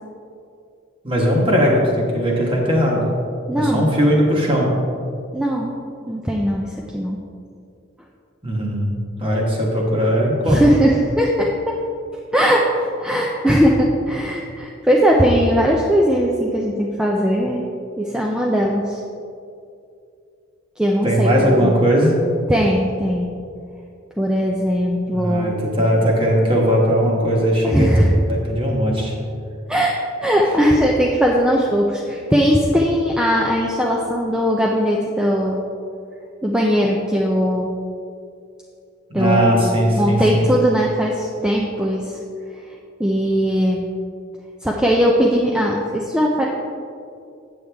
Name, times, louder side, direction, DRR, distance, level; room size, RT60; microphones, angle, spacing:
voice 1, 1.0-3.1 3.5-4.7 8.4-8.9 9.2-10.6 21.0-22.2 25.1-27.9 28.3-29.1 39.1-40.5, equal, 25° right, -2 dB, 1.4 m, -18 dB
voice 2, 3.5-3.9 5.3-5.7 6.1-7.2 10.4-11.8 12.3-12.7 13.0-17.6 18.0-19.0 20.8-21.7 22.5-23.3 24.2-25.6 27.6-28.1 29.7-29.9 30.2-35.6 36.4-37.7 39.1-42.2 42.5-42.6 43.0-43.9 44.6-46.5, equal, 5° right, -2 dB, 0.4 m, -19 dB
8.8 x 7.9 x 3.4 m, 2.5 s
head